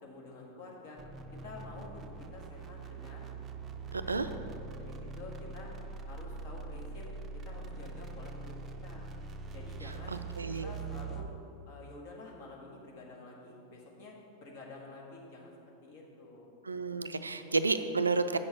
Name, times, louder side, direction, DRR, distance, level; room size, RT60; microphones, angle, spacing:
voice 1, 0.0-1.0 1.4-3.3 3.9-4.5 4.8-5.7 6.1-7.1 7.4-8.6 8.8-9.1 9.5-10.2 10.6-11.3 11.6-15.5 15.8-16.6, left 2 dB, 50° left, -2 dB, 1.7 m, -49 dB
sound 1, 1.0-11.4, right 4 dB, 25° right, 0.5 m, -43 dB
voice 2, 3.9-4.3 10.4-10.7 16.6-18.4, right 3 dB, 75° right, 10 dB, 0.4 m, -31 dB
7.2 x 6.3 x 6.6 m, 2.8 s
figure-of-eight pair, 90°, 0 cm